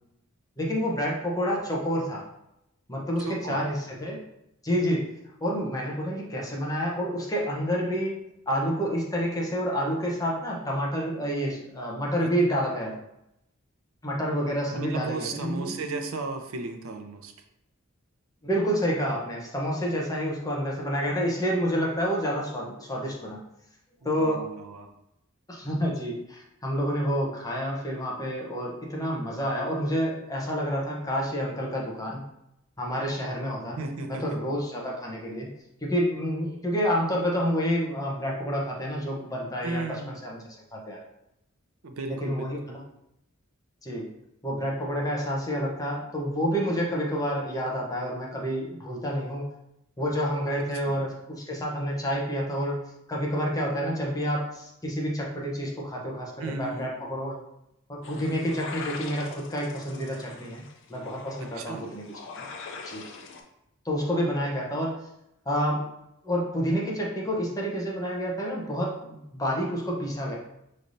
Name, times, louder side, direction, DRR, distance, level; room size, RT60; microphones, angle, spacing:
voice 1, 0.6-2.2 2.9-4.2 4.6-5.0 5.4-8.2 8.5-12.9 14.0-15.8 18.4-23.4 24.0-24.4 25.5-32.2 32.8-33.8 34.1-35.5 35.8-41.0 42.2-42.8 43.8-44.1 44.4-49.5 50.0-52.8 53.1-57.4 57.9-60.6 60.9-62.0 62.9-63.0 63.8-65.0 65.5-65.9 66.2-70.4, equal, 15° left, -3 dB, 0.8 m, -29 dB
voice 2, 3.2-3.6 12.2-12.6 14.7-17.3 24.0-24.9 33.6-34.4 39.6-40.2 41.8-42.8 50.8-51.0 56.4-56.9 61.4-61.9, right 3 dB, 80° right, 5 dB, 0.6 m, -35 dB
sound 1, 58.0-63.4, left 4 dB, 60° left, 0.6 m, -42 dB
5.3 x 3.2 x 2.6 m, 0.84 s
head